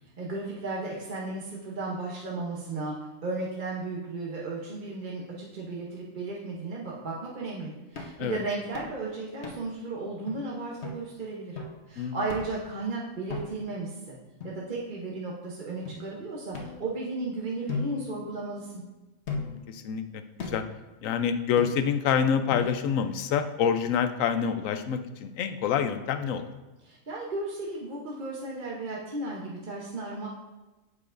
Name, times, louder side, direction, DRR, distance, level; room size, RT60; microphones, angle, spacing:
voice 1, 0.2-2.9 3.2-11.6 11.9-14.1 14.4-18.8 26.9-30.3, right 3 dB, 40° right, -5 dB, 1.0 m, -35 dB
sound 1, 8.0-8.2 8.7-9.0 9.4-9.8 10.3-10.4 10.8-11.0 11.6-11.8 12.3-12.7 13.3-13.7 14.4-15.1 15.9-16.0 16.5-17.2 17.7-18.7 19.3-19.7 20.4-20.8 21.6-22.0 22.5-23.0, left 4 dB, 55° left, 1.2 m, -38 dB
voice 2, 19.4-20.6 21.0-26.4, left 7 dB, 75° left, 9 dB, 1.0 m, -27 dB
8.4 x 6.7 x 2.6 m, 1.1 s
omnidirectional pair, 1.4 m